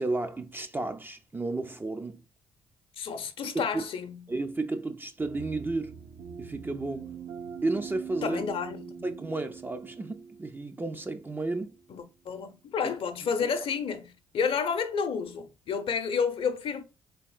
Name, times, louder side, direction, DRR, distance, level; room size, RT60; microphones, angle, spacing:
voice 1, 0.0-2.2 3.5-3.8 4.3-6.0 6.4-7.2 7.6-8.4 9.0-11.8 12.8-12.9 13.4-13.5, right 2 dB, 15° right, 0.4 m, -32 dB
voice 2, 3.0-4.2 8.2-9.1 11.9-16.8, left 6 dB, 45° left, 0.6 m, -30 dB
sound 1, 5.2-11.8, right 6 dB, 55° right, 0.6 m, -43 dB
4.1 x 3.4 x 2.3 m
figure-of-eight pair, 45°, 13 cm